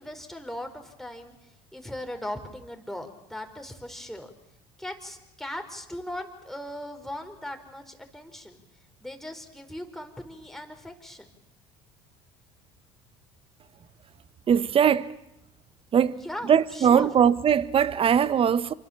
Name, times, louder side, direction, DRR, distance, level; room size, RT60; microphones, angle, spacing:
voice 1, 0.0-1.3 1.7-4.3 4.8-8.6 9.0-11.3 16.2-17.1, left 1 dB, ahead, 4.6 m, -38 dB
voice 2, 14.5-15.1 15.9-18.7, right 8 dB, 40° right, 1.2 m, -21 dB
27.5 x 24.5 x 7.4 m
hypercardioid pair, 70°, 15 cm